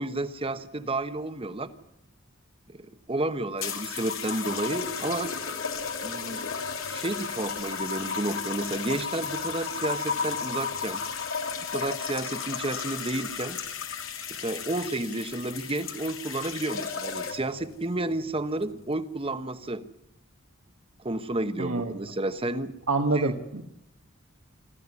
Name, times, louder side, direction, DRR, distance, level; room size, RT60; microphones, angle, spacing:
voice 1, 0.0-1.7 2.8-5.3 6.0-6.4 6.9-11.0 11.7-13.6 14.3-19.9 21.0-22.7 23.1-23.3, right 2 dB, 25° right, 11 dB, 1.2 m, -31 dB
sound 1, 3.6-17.6 18.5-18.8, left 6 dB, 75° left, 2.9 m, -34 dB
voice 2, 21.6-21.9 22.9-23.6, right 3 dB, 75° right, 2 dB, 1.6 m, -26 dB
26.0 x 14.0 x 9.8 m, 0.83 s
head